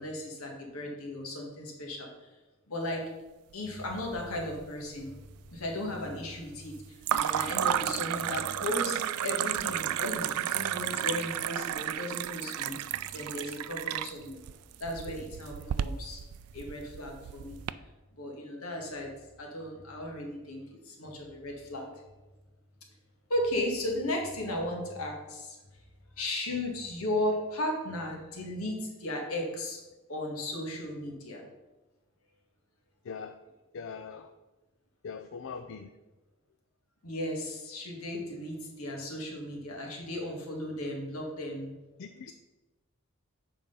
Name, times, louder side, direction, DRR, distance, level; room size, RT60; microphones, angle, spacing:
voice 1, 0.0-2.3 2.7-3.0 3.5-5.1 5.5-14.4 14.8-16.2 16.5-17.6 18.1-19.1 19.4-21.9 23.3-25.6 26.2-29.8 30.1-31.5 37.0-41.8, left 1 dB, 80° left, 1 dB, 1.9 m, -35 dB
sound 1, 3.9-4.6 4.9-5.6 7.0-17.7, right 11 dB, 90° right, 0.3 m, -32 dB
voice 2, 33.0-33.4 33.7-34.3 35.0-35.9 42.0-42.3, left 5 dB, 60° left, 7 dB, 0.4 m, -41 dB
7.7 x 4.8 x 5.5 m, 1.1 s
head